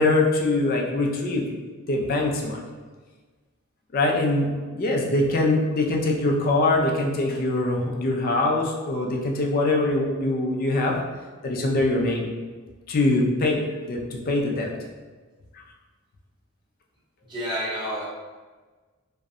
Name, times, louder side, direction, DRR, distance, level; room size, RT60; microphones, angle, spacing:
voice 1, 0.0-1.4 1.9-2.6 3.9-10.9 11.4-12.3 12.9-14.7, left 2 dB, 40° left, 0 dB, 0.3 m, -23 dB
voice 2, 17.3-18.1, equal, 20° right, -6 dB, 0.5 m, -29 dB
2.6 x 2.1 x 2.4 m, 1.4 s
head